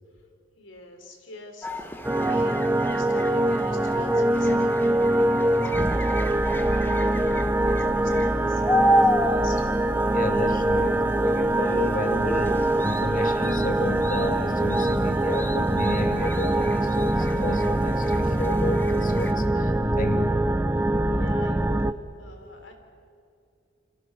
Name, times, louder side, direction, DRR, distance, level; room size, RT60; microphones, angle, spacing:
voice 1, 0.6-2.6 2.9-9.7 20.7-22.7, left 2 dB, 85° left, 5 dB, 3.6 m, -46 dB
sound 1, 1.6-19.3, equal, 10° left, 1.2 m, -32 dB
sound 2, 2.0-21.9, right 1 dB, 10° right, 0.6 m, -23 dB
voice 2, 10.1-20.4, left 2 dB, 45° left, 6 dB, 1.8 m, -32 dB
28.5 x 26.0 x 5.9 m, 2.4 s
head